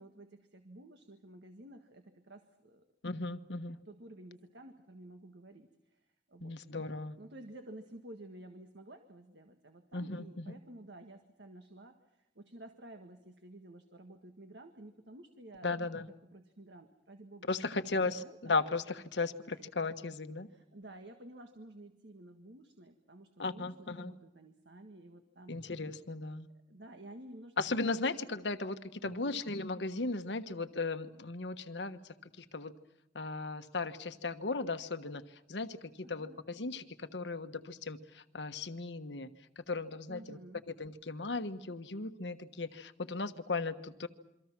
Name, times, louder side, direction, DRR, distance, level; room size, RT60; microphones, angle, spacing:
voice 1, 0.0-2.8 3.9-6.5 7.2-15.8 16.3-18.4 19.5-19.6 20.5-25.6 26.7-28.0 29.0-29.4 36.0-36.4 40.1-40.6, right 1 dB, 75° right, 6 dB, 1.7 m, -52 dB
voice 2, 3.0-3.8 6.4-7.2 9.9-10.5 15.6-16.1 17.5-20.5 23.4-24.1 25.5-26.5 27.6-32.7 33.1-39.3 39.6-40.4 40.7-44.1, left 3 dB, 90° left, 9 dB, 1.3 m, -36 dB
27.5 x 24.5 x 6.0 m, 0.87 s
head